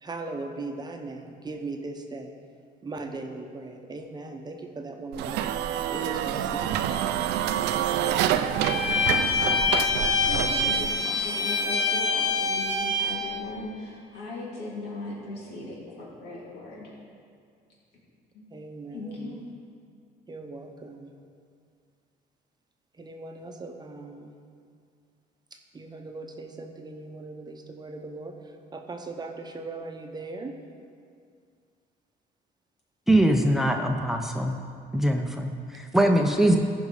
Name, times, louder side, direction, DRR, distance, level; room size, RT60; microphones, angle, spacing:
voice 1, 0.0-2.3 2.8-5.5 5.9-7.0 7.6-9.1 18.5-19.4 20.3-21.1 23.0-24.4 25.7-28.4 28.7-30.6 35.9-36.6, right 3 dB, 25° right, 4 dB, 0.9 m, -39 dB
sound 1, 5.1-10.9, right 10 dB, 85° right, 0.5 m, -27 dB
Bowed string instrument, 8.6-13.2, left 4 dB, 50° left, 2.9 m, -25 dB
voice 2, 10.1-16.9 18.3-18.4 18.9-19.4, left 2 dB, 80° left, -4 dB, 2.9 m, -38 dB
voice 3, 33.1-34.6 34.9-36.6, right 1 dB, ahead, 4 dB, 0.6 m, -22 dB
14.5 x 5.4 x 4.9 m, 2.2 s
cardioid pair, 110°, 17 cm